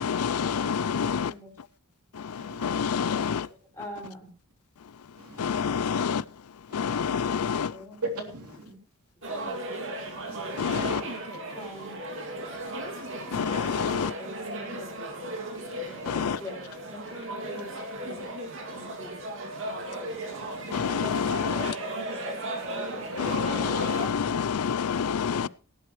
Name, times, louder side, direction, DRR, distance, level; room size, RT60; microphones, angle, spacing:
voice 1, 0.0-1.3 2.1-3.5 5.4-6.2 6.7-7.7 10.6-11.0 13.3-14.1 16.1-16.4 20.7-21.7 23.2-25.5, left 6 dB, 80° left, 0.5 m, -27 dB
voice 2, 1.0-1.6 3.7-4.3 7.4-8.8 9.2-9.5 10.8-12.0 12.4-12.5 13.8-14.3 14.6-15.1 16.0-16.6 16.9-17.0 17.3-17.7 18.0-18.2 18.7-19.2 21.4-22.3, left 1 dB, 10° left, 5.9 m, -45 dB
voice 3, 2.4-3.0 5.2-5.9 6.7-7.3 8.0-8.7 10.3-10.9 13.1-13.8 15.9-16.3 20.3-21.2 22.9-23.7, right 2 dB, 85° right, 3.2 m, -42 dB
Bar Atmos, 9.2-24.1, right 1 dB, 60° right, 2.5 m, -36 dB
18.0 x 11.5 x 3.2 m
head